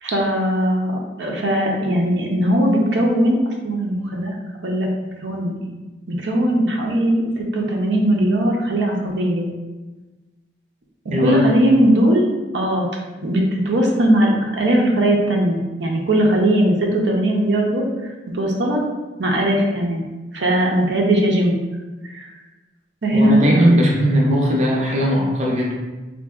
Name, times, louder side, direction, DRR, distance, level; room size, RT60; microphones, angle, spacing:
voice 1, 0.0-3.4 3.6-4.4 4.6-4.9 5.2-5.7 6.1-9.5 11.2-12.3 12.5-12.9 13.2-18.8 19.2-20.0 20.3-21.5 22.0-22.3 23.0-23.6, right 1 dB, 85° right, 0 dB, 0.5 m, -19 dB
voice 2, 11.1-11.4 23.1-25.7, equal, 40° right, -2 dB, 0.5 m, -18 dB
3.7 x 2.6 x 2.3 m, 1.2 s
head